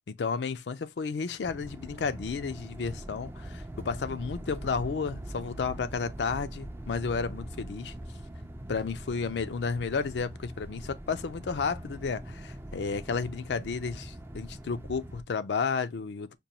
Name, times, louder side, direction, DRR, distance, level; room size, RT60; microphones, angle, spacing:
voice 1, 0.1-7.9 8.7-16.4, left 5 dB, 70° left, 0.4 m, -32 dB
sound 1, 1.4-15.2, right 1 dB, 15° right, 0.3 m, -42 dB
5.2 x 2.2 x 2.8 m
head